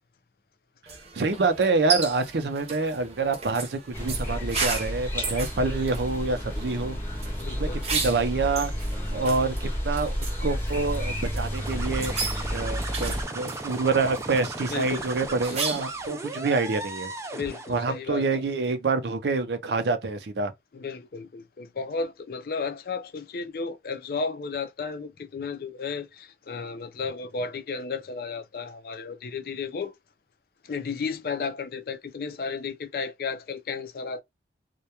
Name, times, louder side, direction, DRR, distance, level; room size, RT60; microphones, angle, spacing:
sound 1, 0.9-16.1, right 4 dB, 35° right, 0.7 m, -35 dB
voice 1, 1.1-7.0 7.6-8.7 9.1-10.1 10.4-12.1 12.5-17.1 17.7-20.5, right 3 dB, 75° right, 0.5 m, -26 dB
sound 2, 3.9-13.3, equal, 15° left, 0.7 m, -31 dB
voice 2, 7.4-7.8 14.7-15.4 17.3-18.4 20.7-29.9 30.6-34.2, left 4 dB, 55° left, 0.4 m, -33 dB
sound 3, 11.4-17.9, right 2 dB, 15° right, 0.3 m, -36 dB
2.3 x 2.2 x 2.8 m
head